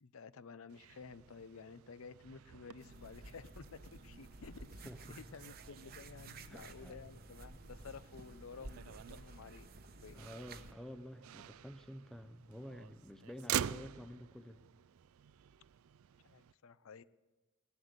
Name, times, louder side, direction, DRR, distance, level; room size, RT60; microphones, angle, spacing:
voice 1, 0.0-9.7 10.0-10.2 16.2-17.0, left 5 dB, 85° left, 16 dB, 0.6 m, -53 dB
Motor vehicle (road), 0.7-16.5, right 10 dB, 90° right, 0.4 m, -47 dB
sound 1, 2.2-9.0, equal, 45° left, 1.0 m, -71 dB
sound 2, 2.8-10.7, right 2 dB, 45° right, 0.9 m, -53 dB
voice 2, 4.9-5.4 6.5-7.0 10.1-14.7, equal, ahead, 9 dB, 0.5 m, -50 dB
17.5 x 11.5 x 6.7 m, 1.2 s
head